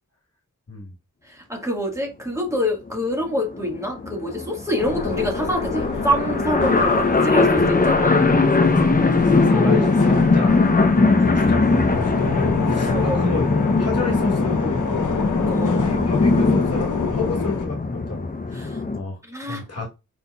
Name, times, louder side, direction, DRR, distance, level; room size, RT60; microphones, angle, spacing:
voice 1, 1.3-8.3 9.5-9.9 12.9-13.2 15.5-15.7 18.5-18.8 19.3-19.6, equal, 10° right, 1.6 m, -26 dB
sound 1, 2.5-2.6 2.9-3.0 3.1-19.0, left 3 dB, 30° left, 0.6 m, -20 dB
sound 2, 4.8-17.7, left 5 dB, 70° left, 0.8 m, -28 dB
voice 2, 8.6-10.6 10.9-13.5 13.8-15.1 15.5-18.6 18.9-19.9, left 3 dB, 50° left, 1.3 m, -29 dB
5.0 x 4.3 x 2.3 m
wide cardioid pair, 120°, 31 cm